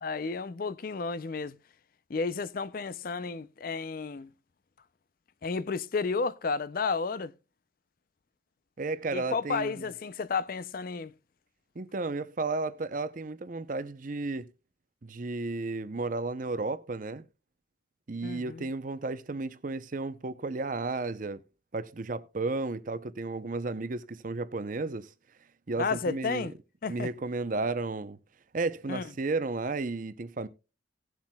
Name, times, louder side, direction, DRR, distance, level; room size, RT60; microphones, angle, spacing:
voice 1, 0.0-1.6 2.1-4.3 5.4-7.3 9.1-11.1 18.2-18.6 25.8-26.5 26.8-27.1 28.9-29.0, left 4 dB, 45° left, 0.4 m, -32 dB
voice 2, 8.8-9.9 11.8-14.5 15.0-17.3 18.1-21.4 21.7-25.1 25.7-26.5 26.9-28.2 28.5-30.5, right 3 dB, 45° right, 0.6 m, -33 dB
18.5 x 7.4 x 2.2 m
head